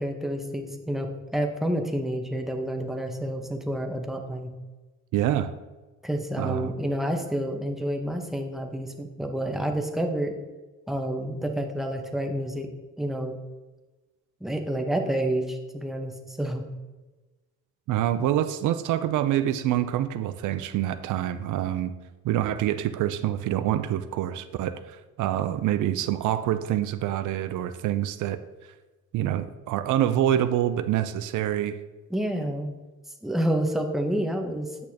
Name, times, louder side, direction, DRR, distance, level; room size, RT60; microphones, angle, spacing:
voice 1, 0.0-4.5 6.0-10.3 10.9-12.7 13.0-13.4 14.4-16.6 32.1-32.7 33.2-34.9, right 1 dB, ahead, 4 dB, 0.9 m, -29 dB
voice 2, 5.1-5.5 6.4-6.7 17.9-21.9 22.2-28.4 29.1-31.8, right 12 dB, 80° right, 11 dB, 0.5 m, -26 dB
8.6 x 6.2 x 2.8 m, 1.2 s
cardioid pair, 90°, 30 cm